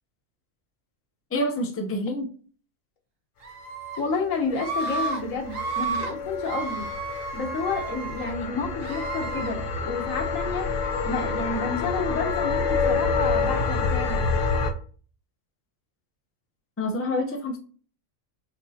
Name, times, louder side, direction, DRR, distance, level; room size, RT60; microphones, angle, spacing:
voice 1, 1.3-2.3 16.8-17.6, left 1 dB, 15° left, 2 dB, 0.5 m, -27 dB
Screaming, 3.4-4.0 4.5-5.2 5.5-6.1 6.4-8.3 8.8-9.5, right 3 dB, 85° right, 1.3 m, -32 dB
voice 2, 4.0-6.9 7.3-10.6 11.0-14.2, left 4 dB, 85° left, 3 dB, 1.4 m, -30 dB
sound 1, 4.2-14.7, left 4 dB, 50° left, 0.7 m, -28 dB
6.4 x 2.9 x 2.8 m, 0.41 s
omnidirectional pair, 1.3 m